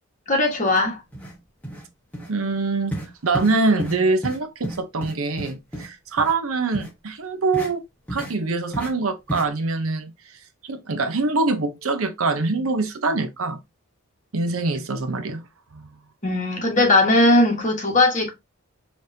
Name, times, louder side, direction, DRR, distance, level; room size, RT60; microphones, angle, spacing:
voice 1, 0.3-1.0 16.2-18.3, left 2 dB, 35° left, 1.4 m, -18 dB
sound 1, 0.7-0.8 1.1-1.4 1.6-1.9 2.1-2.3 2.9-3.1 3.3-3.5 3.8-4.0 4.2-4.4 4.6-5.9 6.2-6.3 6.7-6.9 7.5-7.7 8.1-8.3 8.7-8.9 9.3-9.4, right 1 dB, 5° left, 1.3 m, -31 dB
voice 2, 2.3-3.0 3.2-7.8 8.1-10.1 10.6-13.6 14.3-15.4 15.7-15.9, right 3 dB, 70° right, 0.7 m, -24 dB
5.0 x 3.1 x 2.7 m
head